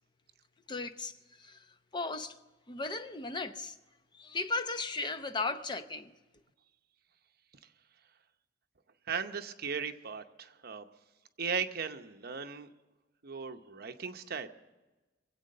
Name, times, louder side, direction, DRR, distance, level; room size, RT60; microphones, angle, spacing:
voice 1, 0.7-2.4 2.7-3.8 4.1-6.1, left 3 dB, 25° left, 0.7 m, -36 dB
voice 2, 9.1-10.8 11.4-12.7 13.2-14.5, right 6 dB, 55° right, 0.8 m, -37 dB
22.0 x 8.4 x 6.6 m
head